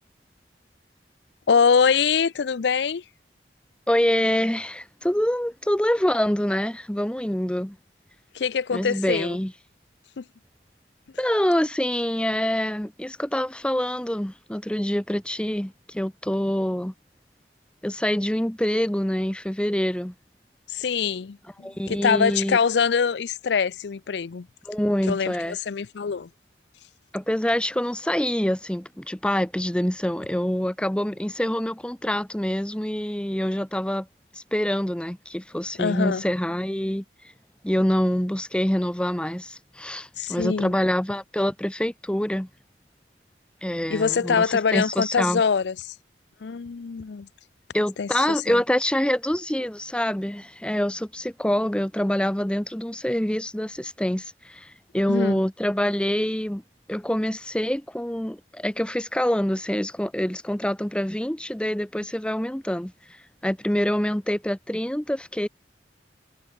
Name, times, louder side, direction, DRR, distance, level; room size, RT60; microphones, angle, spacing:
voice 1, 1.5-3.0 8.3-9.4 10.2-10.3 20.7-24.5 25.1-26.3 35.8-36.2 40.2-40.8 43.9-46.0 46.4-47.3 48.0-48.6 55.1-55.4, left 6 dB, 75° left, 0.5 m, -24 dB
voice 2, 3.9-7.8 8.7-9.5 11.2-16.9 17.8-20.1 21.6-22.6 24.7-25.6 27.1-34.1 34.3-37.0 37.6-42.5 43.6-45.4 47.7-56.6 56.9-63.2 63.4-65.5, equal, 5° left, 0.7 m, -26 dB
head